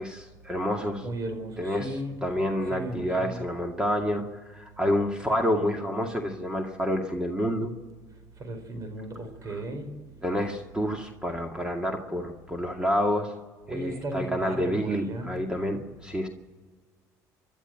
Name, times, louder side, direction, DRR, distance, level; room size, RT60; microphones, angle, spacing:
voice 1, 0.0-1.0 1.6-7.7 9.5-9.6 10.2-13.3 13.7-16.3, equal, 10° right, 3 dB, 2.2 m, -28 dB
voice 2, 1.0-2.2 2.7-3.4 8.4-9.9 13.7-15.4, right 1 dB, 45° right, 8 dB, 4.6 m, -35 dB
28.5 x 12.0 x 7.6 m, 1.5 s
supercardioid pair, 85°, 8 cm